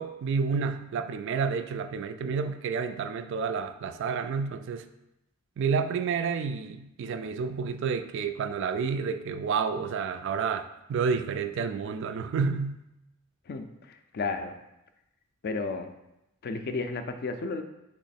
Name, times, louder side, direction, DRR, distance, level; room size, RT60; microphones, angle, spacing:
voice 1, 0.0-4.9 5.6-10.6 10.9-12.8, right 5 dB, 55° right, 10 dB, 0.3 m, -30 dB
voice 2, 13.5-14.5 15.4-15.9 16.4-17.6, left 3 dB, 45° left, 8 dB, 0.4 m, -33 dB
4.1 x 3.0 x 4.2 m, 0.89 s
head